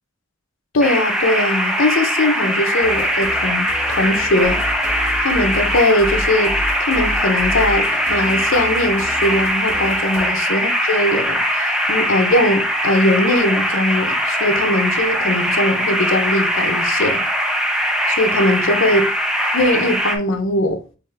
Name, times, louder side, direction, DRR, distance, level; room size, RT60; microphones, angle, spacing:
voice 1, 0.7-4.6 5.2-17.2 18.1-19.1 19.5-20.8, left 1 dB, 75° left, 0.7 m, -20 dB
sound 1, 0.8-20.2, equal, 5° right, 0.5 m, -20 dB
sound 2, 2.8-10.3, left 1 dB, 15° left, 0.9 m, -31 dB
3.5 x 3.4 x 3.3 m
head